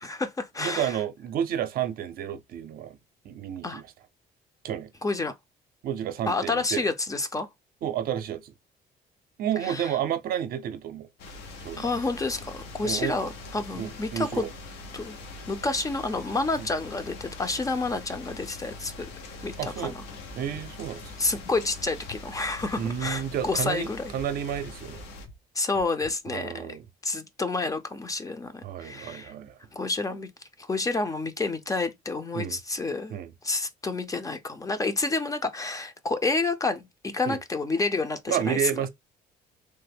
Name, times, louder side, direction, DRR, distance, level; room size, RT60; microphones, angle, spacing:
voice 1, 0.0-1.0 3.6-3.8 5.0-5.3 6.3-7.5 9.6-9.9 11.8-14.5 14.9-15.1 15.5-19.1 19.4-20.0 21.2-24.1 25.5-26.8 27.0-29.3 29.7-30.3 30.6-33.2 33.4-38.9, left 3 dB, 20° left, 0.5 m, -29 dB
voice 2, 0.6-3.0 3.2-3.9 4.6-4.9 5.8-6.9 7.8-8.5 9.4-11.1 11.6-11.9 12.8-13.1 13.7-14.5 16.6-16.7 19.6-19.9 20.4-21.1 22.8-25.0 26.3-26.8 28.6-29.6 32.3-32.6 33.1-33.3 37.3-37.4 38.3-38.9, right 10 dB, 60° right, 0.5 m, -31 dB
sound 1, 11.2-25.3, left 2 dB, 90° left, 0.8 m, -43 dB
sound 2, 20.2-20.6 21.0-21.4 21.8-23.0 23.4-23.8 24.1-24.6 24.9-25.4 25.7-26.1, left 1 dB, 65° left, 1.4 m, -47 dB
3.2 x 2.0 x 3.4 m
cardioid pair, 110°, 17 cm